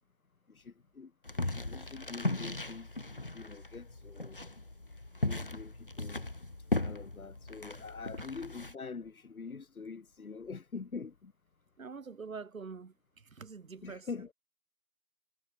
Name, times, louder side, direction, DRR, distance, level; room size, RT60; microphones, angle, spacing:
voice 1, 0.5-1.1 1.4-2.9 3.3-4.4 5.2-6.3 6.7-11.3 13.8-14.3, left 5 dB, 55° left, 3.0 m, -45 dB
sound 1, 1.3-8.7, left 2 dB, 35° left, 0.8 m, -37 dB
sound 2, 3.5-9.0, left 14 dB, 15° left, 5.5 m, -76 dB
voice 2, 11.8-14.1, right 5 dB, 55° right, 2.8 m, -45 dB
hypercardioid pair, 175°, 49 cm